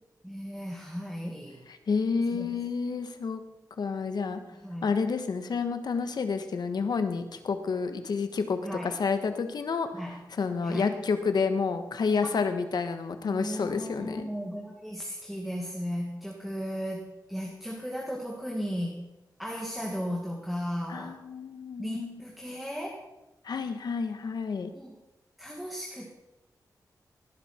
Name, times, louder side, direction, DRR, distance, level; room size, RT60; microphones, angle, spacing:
voice 1, 0.2-1.6 2.3-2.6 4.6-4.9 8.6-8.9 9.9-10.2 10.6-10.9 13.2-19.1 19.4-21.2 21.8-23.0 24.7-24.9 25.4-26.1, equal, ahead, -2 dB, 2.1 m, -35 dB
voice 2, 1.9-3.4 3.8-4.4 4.8-9.9 10.4-14.3 20.9-22.2 23.4-24.7, left 5 dB, 75° left, 8 dB, 1.3 m, -29 dB
17.5 x 10.0 x 4.4 m, 0.98 s
wide cardioid pair, 90°, 7 cm